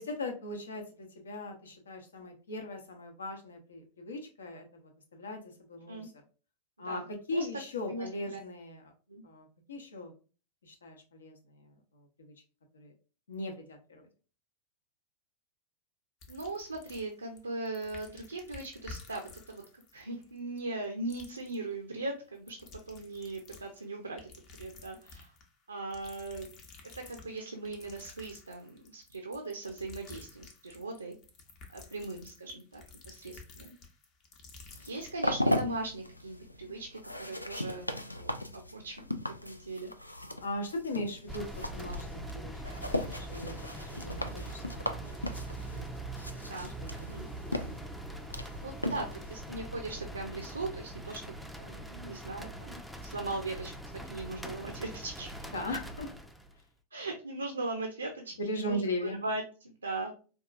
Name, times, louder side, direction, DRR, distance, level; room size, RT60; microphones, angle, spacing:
voice 1, 0.0-5.4 5.7-6.1 6.8-7.0 7.3-8.8 9.2-10.1 10.6-12.3 12.7-12.9 13.3-14.1 31.9-32.0 40.4-46.9 55.5-56.1 58.4-59.2, left 1 dB, 70° left, 4 dB, 0.8 m, -39 dB
voice 2, 7.9-8.4 9.1-9.2 16.3-19.6 19.9-22.6 22.9-24.2 24.6-25.3 25.7-26.5 26.9-31.2 31.7-33.7 34.8-39.0 39.4-39.9 46.3-47.3 48.6-53.8 54.1-55.5 56.9-58.8 59.2-60.1, right 2 dB, 80° right, 3 dB, 0.5 m, -39 dB
sound 1, 16.2-17.4 17.7-20.8 21.1-21.6 22.4-23.8 24.2-25.5 25.9-35.1, left 4 dB, 40° left, 0.8 m, -52 dB
sound 2, 34.7-49.4, left 1 dB, 85° left, 0.3 m, -37 dB
sound 3, 41.3-56.6, right 1 dB, ahead, 0.4 m, -42 dB
4.5 x 2.3 x 2.5 m, 0.36 s
figure-of-eight pair, 90°, 0 cm